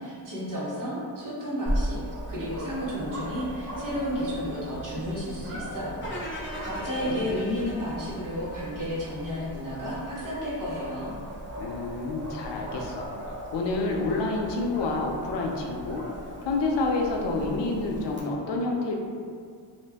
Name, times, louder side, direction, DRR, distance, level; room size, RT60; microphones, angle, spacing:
voice 1, 0.0-2.0 2.3-6.0 6.6-11.1, equal, 50° right, -8 dB, 1.0 m, -32 dB
Dog, 1.7-18.2, equal, 30° right, 0.4 m, -38 dB
sound 1, 6.0-9.2, left 1 dB, 30° left, 0.5 m, -40 dB
voice 2, 6.5-7.3 11.6-13.1 13.5-16.0 16.4-19.0, left 3 dB, 75° left, 0 dB, 0.5 m, -29 dB
2.5 x 2.1 x 3.4 m, 2.1 s
wide cardioid pair, 140°, 42 cm